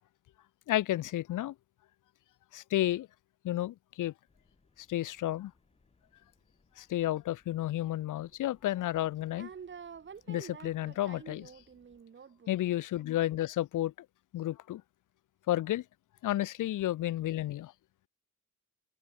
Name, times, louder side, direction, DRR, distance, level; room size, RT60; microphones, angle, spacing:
voice 1, 0.7-1.5 2.5-3.1 3.4-4.1 4.9-5.5 6.8-9.5 10.3-11.5 12.5-14.1 14.3-14.8 15.5-15.8 16.2-17.7, left 14 dB, 80° left, 0.6 m, -31 dB
sound 1, 4.3-12.0, left 3 dB, 20° left, 4.2 m, -70 dB
voice 2, 9.3-12.5, right 7 dB, 40° right, 1.2 m, -48 dB
wide cardioid pair, 155°, 31 cm